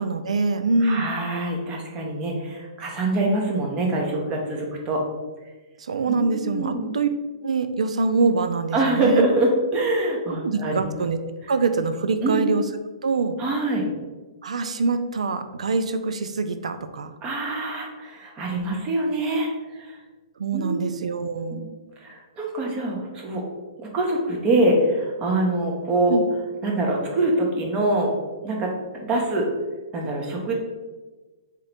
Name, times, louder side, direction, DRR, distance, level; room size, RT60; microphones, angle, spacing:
voice 1, 0.0-1.1 5.8-7.1 7.4-9.2 10.4-11.2 11.5-12.6 13.0-13.4 14.4-17.1 20.4-21.7 26.1-26.2, right 4 dB, 85° right, 10 dB, 0.4 m, -24 dB
voice 2, 0.8-5.0 6.1-6.9 8.7-11.1 12.2-12.4 13.4-13.8 17.2-19.5 19.7-20.0 20.5-20.8 21.5-21.7 22.0-23.4 23.8-26.2 26.6-28.1 28.4-29.5 29.9-30.5, right 2 dB, 25° right, 0 dB, 0.8 m, -24 dB
3.6 x 2.9 x 3.3 m, 1.2 s
hypercardioid pair, 140°, 3 cm